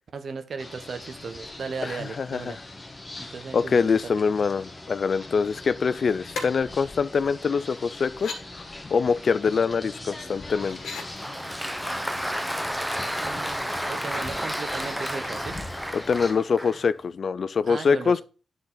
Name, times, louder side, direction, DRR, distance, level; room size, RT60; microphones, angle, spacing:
voice 1, 0.1-2.6 3.2-4.1 13.1-15.6 17.7-18.2, right 5 dB, 60° right, 1.0 m, -36 dB
sound 1, 0.6-16.3, left 2 dB, 25° left, 1.2 m, -41 dB
voice 2, 1.8-2.5 3.5-8.6 8.9-10.8 15.9-18.2, left 5 dB, 55° left, 0.3 m, -24 dB
sound 2, 6.3-6.5 7.3-7.4 8.0-8.4 10.1-11.1 12.8-13.0 13.3-13.8 14.8-15.8 16.1-16.2, left 4 dB, 80° left, 1.6 m, -38 dB
Applause, 10.7-16.9, equal, 5° right, 0.7 m, -32 dB
9.7 x 4.0 x 3.9 m
cardioid pair, 60°, 0 cm